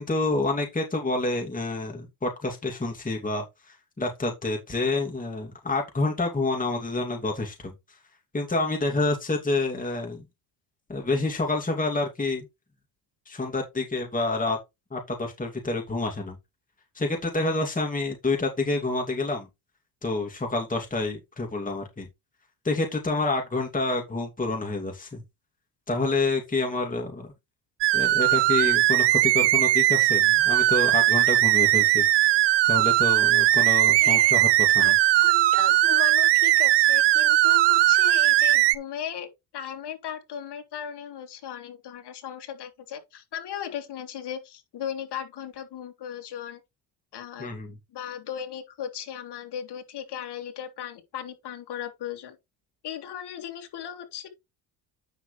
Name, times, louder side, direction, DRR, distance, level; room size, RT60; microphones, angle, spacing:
voice 1, 0.0-7.7 8.3-10.2 10.9-12.5 13.3-14.6 14.9-16.4 16.9-19.5 20.0-22.1 22.6-25.2 25.9-27.3 27.9-32.0 32.7-34.9 47.4-47.8, left 2 dB, 15° left, 2.7 m, -28 dB
sound 1, 27.8-38.8, right 16 dB, 55° right, 0.9 m, -19 dB
voice 2, 34.0-34.3 34.8-34.9 35.2-46.6 47.1-47.5 47.9-52.4 52.8-54.3, left 9 dB, 50° left, 3.0 m, -37 dB
9.2 x 6.5 x 3.3 m
supercardioid pair, 75°, 50 cm